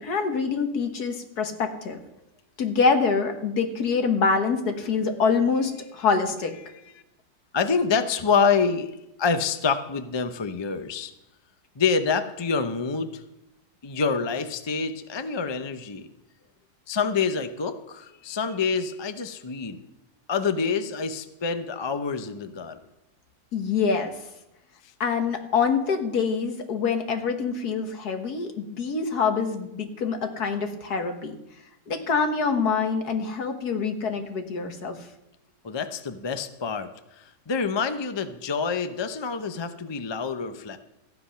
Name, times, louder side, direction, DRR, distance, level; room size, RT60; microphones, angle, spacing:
voice 1, 0.0-2.0 2.6-6.5 23.5-24.1 25.0-31.4 31.9-35.1, left 5 dB, 65° left, 5 dB, 1.9 m, -25 dB
voice 2, 7.5-8.9 9.2-11.1 11.8-13.2 13.8-16.1 16.9-19.8 20.3-22.8 35.6-36.9 37.2-40.8, left 5 dB, 45° left, 9 dB, 0.3 m, -26 dB
14.0 x 10.0 x 5.7 m, 0.87 s
omnidirectional pair, 1.8 m